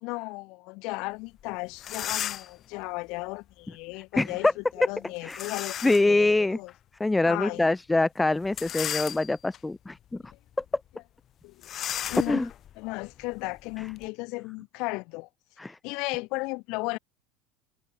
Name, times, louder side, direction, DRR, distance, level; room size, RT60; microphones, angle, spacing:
voice 1, 0.0-6.7 7.2-7.7 11.4-11.5 12.1-12.5 12.8-15.3 15.8-17.0, left 26 dB, 65° left, 1.6 m, -35 dB
sound 1, 1.4-1.5 1.8-2.6 5.3-6.2 6.7-6.8 8.4-9.6 10.1-10.4 10.6-10.7 11.6-14.1, left 11 dB, 40° left, 1.1 m, -35 dB
voice 2, 4.1-4.5 5.2-5.4 5.8-6.6 7.0-10.3 12.3-12.5 15.6-15.8, left 2 dB, 10° left, 0.7 m, -24 dB
supercardioid pair, 115°, 0 cm